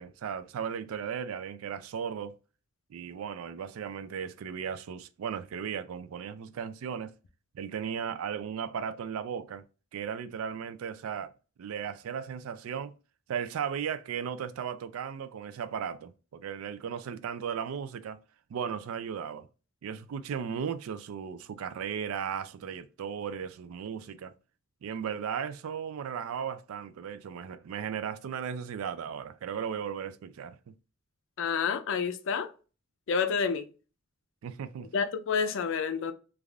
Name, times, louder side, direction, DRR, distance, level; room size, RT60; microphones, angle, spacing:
voice 1, 0.0-2.4 2.9-7.1 7.5-9.6 9.9-11.3 11.6-12.9 13.3-18.2 18.5-19.5 19.8-24.3 24.8-30.7 34.4-34.9, right 7 dB, 80° right, 0.3 m, -36 dB
voice 2, 31.4-32.5 33.1-33.7 34.9-36.1, left 6 dB, 65° left, 0.4 m, -29 dB
3.2 x 2.4 x 2.3 m
head